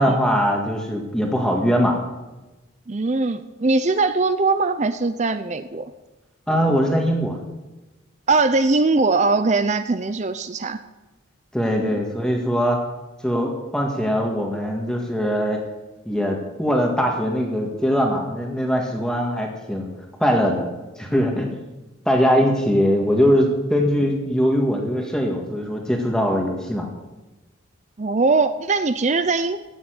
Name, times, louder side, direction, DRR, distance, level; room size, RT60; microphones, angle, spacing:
voice 1, 0.0-2.0 6.5-7.4 11.5-12.8 13.2-15.6 16.0-19.9 20.2-20.7 21.0-21.5 22.0-26.9, equal, 5° left, 1 dB, 1.8 m, -21 dB
voice 2, 2.9-5.9 8.3-10.8 11.8-11.9 28.0-29.6, right 3 dB, 35° right, 11 dB, 0.5 m, -21 dB
15.5 x 7.1 x 9.5 m, 1.1 s
head